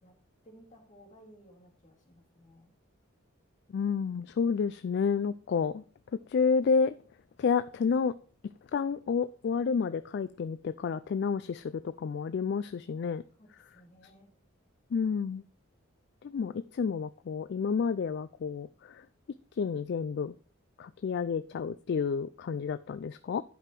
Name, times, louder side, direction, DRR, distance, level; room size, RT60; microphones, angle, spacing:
voice 1, 0.4-2.7 13.4-14.3, equal, 35° left, 1 dB, 2.3 m, -57 dB
voice 2, 3.7-5.8 6.1-6.9 7.4-8.1 8.7-13.2 14.9-15.4 16.2-19.0 19.5-20.3 20.8-23.4, left 5 dB, 55° left, 13 dB, 0.3 m, -30 dB
11.0 x 5.1 x 4.5 m, 0.41 s
head